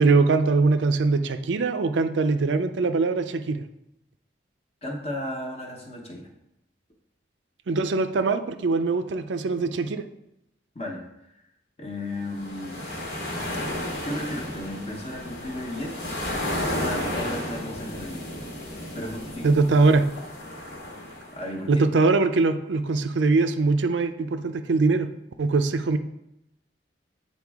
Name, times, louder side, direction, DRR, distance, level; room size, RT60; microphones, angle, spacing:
voice 1, 0.0-3.6 7.7-10.0 19.4-20.1 21.7-25.1 25.4-26.0, right 3 dB, 80° right, 9 dB, 0.5 m, -22 dB
voice 2, 4.8-6.3 10.7-11.0 11.8-12.9 14.0-16.2 16.6-18.3 18.9-19.6 21.3-21.8, left 1 dB, 35° left, 1 dB, 1.1 m, -34 dB
sound 1, 12.2-21.5, left 1 dB, 75° left, 1.6 m, -33 dB
8.3 x 4.2 x 3.5 m, 0.85 s
head